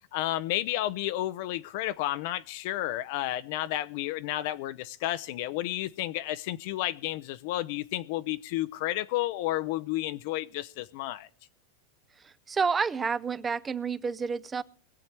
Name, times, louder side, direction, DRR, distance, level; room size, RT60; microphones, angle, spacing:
voice 1, 0.1-11.3, left 15 dB, 60° left, 0.6 m, -31 dB
voice 2, 12.2-14.6, right 5 dB, 15° right, 0.5 m, -29 dB
21.5 x 7.9 x 4.5 m
supercardioid pair, 130°, 0 cm